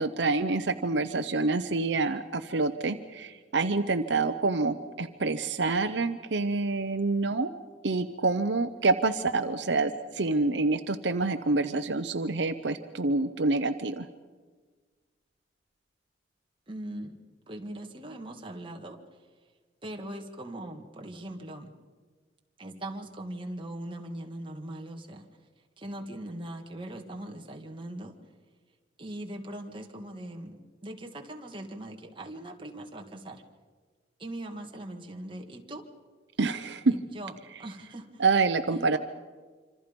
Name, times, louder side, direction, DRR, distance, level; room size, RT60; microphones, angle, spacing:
voice 1, 0.0-7.5 7.8-14.1 36.4-36.9 38.2-39.0, right 3 dB, 70° right, 9 dB, 0.8 m, -27 dB
voice 2, 16.7-17.2 17.5-19.0 19.8-21.7 22.6-25.3 25.8-28.1 29.0-33.4 34.2-35.8 36.9-38.2 38.7-39.0, right 1 dB, 30° right, 2 dB, 2.0 m, -40 dB
26.5 x 26.0 x 5.3 m, 1.5 s
head